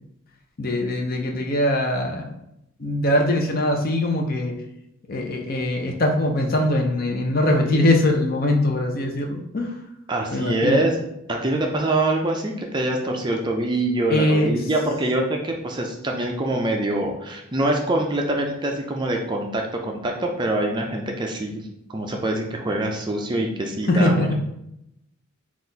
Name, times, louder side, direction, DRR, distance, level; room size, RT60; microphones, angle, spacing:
voice 1, 0.6-2.3 2.8-4.5 5.1-9.8 10.3-10.8 14.1-14.6 23.9-24.3, left 1 dB, 45° left, 2 dB, 0.6 m, -22 dB
voice 2, 10.1-11.0 11.3-24.3, right 1 dB, 20° right, 2 dB, 0.4 m, -24 dB
4.1 x 2.4 x 3.9 m, 0.80 s
head